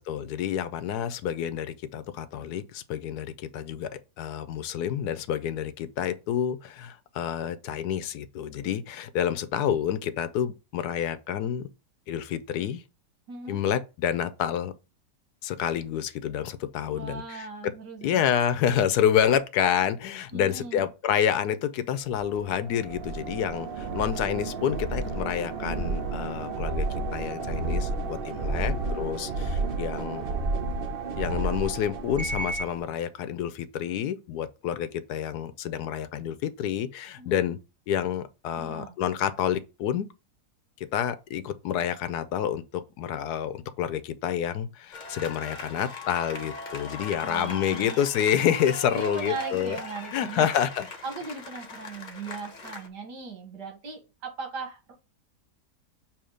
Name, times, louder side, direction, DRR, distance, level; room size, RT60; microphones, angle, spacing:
voice 1, 0.1-11.7 12.1-12.8 13.5-14.7 15.4-17.7 18.0-26.9 27.1-30.2 31.2-37.6 37.9-40.1 40.8-42.6 43.0-49.8 50.1-50.9, left 9 dB, 75° left, 1.1 m, -28 dB
voice 2, 13.3-13.6 16.9-18.2 20.3-20.9 28.4-28.7 37.2-37.4 38.6-38.9 47.2-48.0 48.9-50.5 51.0-54.9, right 4 dB, 80° right, 2.1 m, -39 dB
sound 1, 22.2-32.8, right 3 dB, 45° right, 0.7 m, -31 dB
sound 2, 44.9-52.9, left 3 dB, 35° left, 0.9 m, -39 dB
7.1 x 3.1 x 5.0 m
omnidirectional pair, 1.8 m